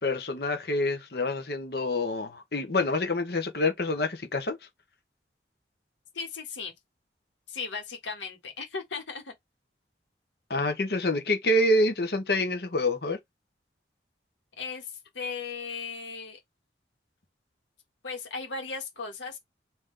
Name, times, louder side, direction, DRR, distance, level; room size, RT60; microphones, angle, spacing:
voice 1, 0.0-4.6 10.5-13.2, left 1 dB, 60° left, 1.0 m, -27 dB
voice 2, 6.1-6.7 7.5-9.3 14.6-16.4 18.0-19.4, left 4 dB, 90° left, 1.6 m, -36 dB
3.8 x 2.9 x 3.3 m
head